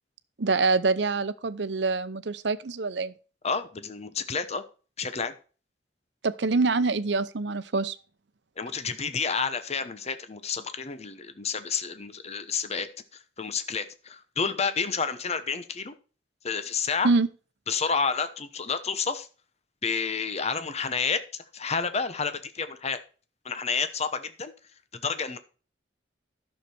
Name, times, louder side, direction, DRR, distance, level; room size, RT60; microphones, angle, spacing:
voice 1, 0.4-3.1 6.2-8.0 17.0-17.3, right 3 dB, 70° right, 0.7 m, -25 dB
voice 2, 3.4-4.6 5.0-5.3 8.6-12.9 13.4-16.0 16.4-17.1 17.7-19.3 19.8-23.0 23.4-24.5 24.9-25.4, left 5 dB, 40° left, 0.9 m, -30 dB
11.5 x 6.7 x 4.4 m
head